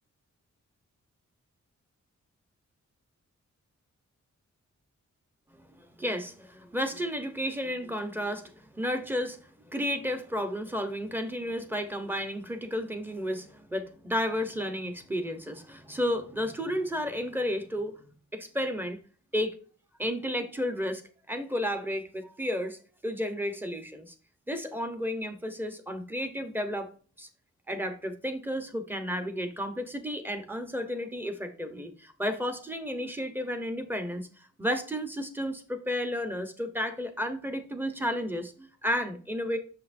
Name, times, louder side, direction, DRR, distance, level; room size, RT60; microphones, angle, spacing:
voice 1, 5.6-18.0 18.3-19.0 19.3-19.6 20.0-24.1 24.5-26.9 27.2-27.3 27.7-39.6, equal, 5° right, 8 dB, 0.9 m, -32 dB
7.1 x 5.7 x 2.6 m, 0.41 s
wide cardioid pair, 125°, 30 cm